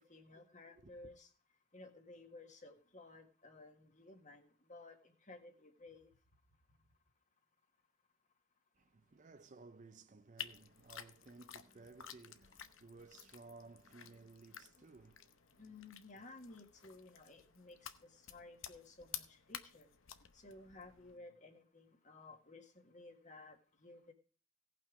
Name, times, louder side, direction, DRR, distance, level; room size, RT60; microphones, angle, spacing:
voice 1, 0.1-1.3 1.7-4.4 4.7-6.1 15.6-19.9 20.3-24.1, left 2 dB, 35° left, 1.7 m, -56 dB
voice 2, 8.8-15.6, right 3 dB, 35° right, 0.4 m, -58 dB
sound 1, 10.4-21.2, left 10 dB, 60° left, 0.8 m, -53 dB
17.5 x 5.8 x 4.8 m
head